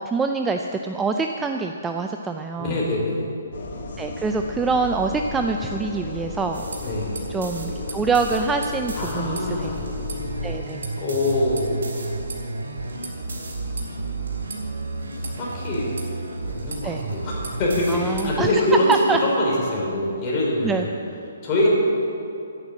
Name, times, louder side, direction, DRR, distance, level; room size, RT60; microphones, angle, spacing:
voice 1, 0.0-2.8 4.0-6.7 7.3-9.8 10.4-10.9 16.8-17.0 17.9-18.6 18.9-19.2 20.6-20.9, right 4 dB, 10° right, 4 dB, 0.4 m, -25 dB
voice 2, 2.6-3.3 6.8-7.2 9.0-9.8 11.0-12.0 15.4-16.0 16.4-18.9 19.2-20.9 21.4-21.7, left 1 dB, 25° left, -4 dB, 3.7 m, -24 dB
sound 1, 3.5-10.6, left 3 dB, 55° left, 2.5 m, -33 dB
sound 2, 6.5-19.3, right 3 dB, 70° right, 3.5 m, -39 dB
sound 3, 8.9-18.4, right 2 dB, 85° right, 2.7 m, -33 dB
11.5 x 9.8 x 7.3 m, 2.6 s
hypercardioid pair, 160°, 0 cm